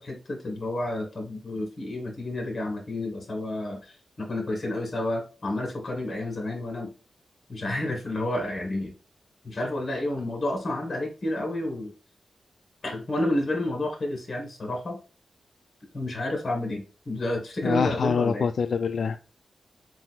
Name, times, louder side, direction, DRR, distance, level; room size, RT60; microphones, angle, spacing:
voice 1, 0.0-6.9 7.5-8.9 9.4-11.9 12.8-15.0 15.9-18.5, left 1 dB, 40° left, 2 dB, 1.9 m, -30 dB
voice 2, 17.6-19.2, left 6 dB, 70° left, 9 dB, 0.3 m, -25 dB
7.2 x 2.7 x 2.2 m, 0.33 s
wide cardioid pair, 135°, 0 cm